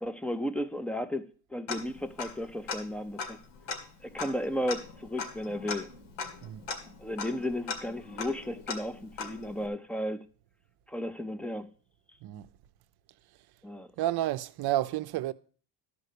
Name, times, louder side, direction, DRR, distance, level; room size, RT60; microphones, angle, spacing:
voice 1, 0.0-3.4 4.0-5.9 7.0-10.2 10.9-11.7 13.6-13.9, left 1 dB, 5° left, 0.4 m, -34 dB
Tick-tock, 1.7-2.4 2.7-2.8 3.2-9.7, left 5 dB, 85° left, 2.2 m, -39 dB
voice 2, 6.4-6.7 12.2-12.5 13.3-13.5 14.0-15.3, right 14 dB, 50° right, 0.6 m, -31 dB
12.5 x 5.1 x 6.6 m
cardioid pair, 130°, 49 cm